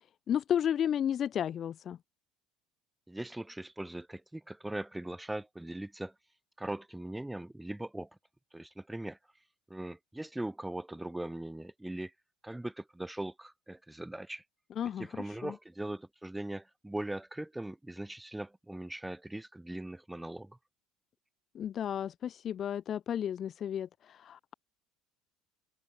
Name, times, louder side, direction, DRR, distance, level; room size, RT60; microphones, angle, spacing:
voice 1, 0.0-2.0 14.8-15.5 21.5-24.5, left 9 dB, 40° left, 0.6 m, -33 dB
voice 2, 3.1-6.1 6.6-8.1 8.5-9.2 9.7-12.1 12.4-14.4 15.0-20.6, right 1 dB, 5° right, 2.2 m, -40 dB
open air
supercardioid pair, 115°, 0 cm